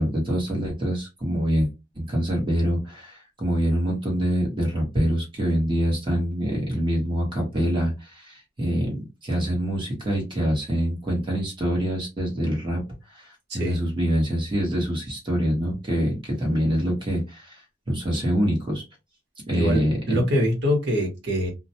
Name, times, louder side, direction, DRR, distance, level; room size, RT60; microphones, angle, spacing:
voice 1, 0.0-1.7 2.0-12.8 13.1-17.6 17.9-18.8 19.5-20.2, equal, 25° right, 1.1 m, -25 dB
voice 2, 13.5-13.8 19.5-19.8 20.1-21.5, equal, 65° right, 1.1 m, -24 dB
2.4 x 2.1 x 2.7 m
head